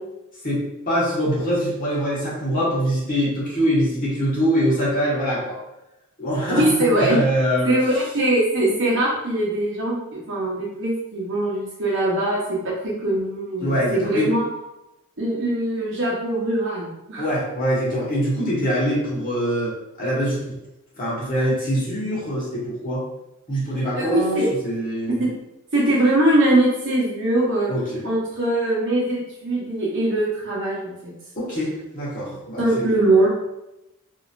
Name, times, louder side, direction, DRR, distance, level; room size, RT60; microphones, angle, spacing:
voice 1, 0.4-5.6 6.2-7.7 13.6-14.3 17.2-20.6 21.0-23.0 23.5-25.2 27.7-28.0 31.4-32.9, equal, 40° left, -7 dB, 1.3 m, -23 dB
voice 2, 6.5-7.2 7.6-14.5 15.2-17.3 23.9-24.5 25.2-25.3 25.7-27.7 28.0-31.1 32.6-33.3, right 1 dB, 60° right, -5 dB, 1.0 m, -22 dB
2.9 x 2.8 x 2.6 m, 0.90 s
head